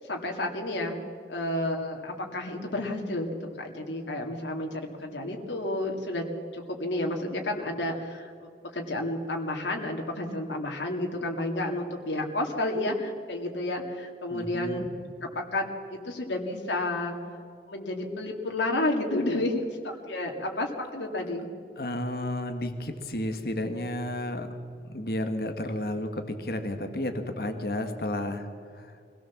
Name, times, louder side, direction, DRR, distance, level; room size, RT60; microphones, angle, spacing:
voice 1, 0.1-1.0 1.3-6.2 6.5-14.8 15.2-15.6 15.9-17.2 17.7-21.5, left 1 dB, 90° left, 1 dB, 2.3 m, -31 dB
voice 2, 14.3-14.9 21.8-24.5 24.8-28.5 28.7-28.9, left 1 dB, 55° left, 7 dB, 1.6 m, -32 dB
24.0 x 17.0 x 7.3 m, 2.3 s
head